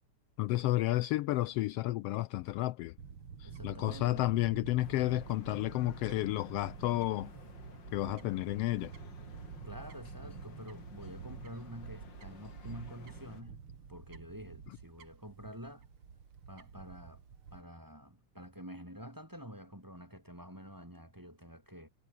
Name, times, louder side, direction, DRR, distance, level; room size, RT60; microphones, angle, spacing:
voice 1, 0.4-2.9 3.4-7.3 7.9-8.9 14.7-14.8, left 17 dB, 90° left, 1.3 m, -31 dB
Fowl / Bird, 3.0-17.6, right 6 dB, 45° right, 3.0 m, -49 dB
voice 2, 3.4-4.2 9.6-13.6 13.9-15.8 16.5-17.2 17.5-21.9, equal, 5° right, 2.6 m, -48 dB
sound 1, 4.8-13.4, left 5 dB, 40° left, 3.0 m, -54 dB
omnidirectional pair, 3.4 m